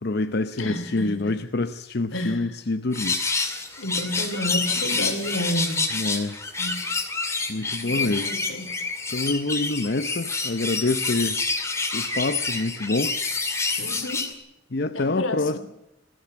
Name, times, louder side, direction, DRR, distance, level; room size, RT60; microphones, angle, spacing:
voice 1, 0.0-3.2 5.9-6.4 7.5-8.3 9.1-11.4 11.9-13.2 14.7-15.6, left 2 dB, 55° left, 0.7 m, -26 dB
voice 2, 0.6-1.3 2.1-2.6 3.8-6.0 6.6-6.9 7.8-8.7 13.8-14.3 14.9-15.6, left 1 dB, 80° left, 2.8 m, -31 dB
sound 1, 2.9-14.3, left 3 dB, 15° left, 2.4 m, -28 dB
20.5 x 15.5 x 8.7 m
head